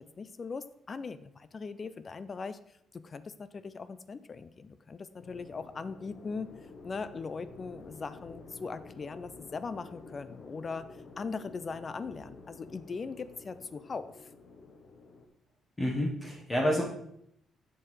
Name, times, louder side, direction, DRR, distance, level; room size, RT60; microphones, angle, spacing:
voice 1, 0.0-2.6 2.9-6.5 6.8-10.9 11.2-14.3, left 4 dB, 40° left, 14 dB, 0.4 m, -40 dB
sound 1, 5.2-15.3, left 3 dB, 60° left, 1.0 m, -51 dB
voice 2, 15.8-16.8, equal, 20° left, -2 dB, 1.3 m, -28 dB
7.6 x 6.8 x 3.3 m, 0.74 s
cardioid pair, 90°, 0 cm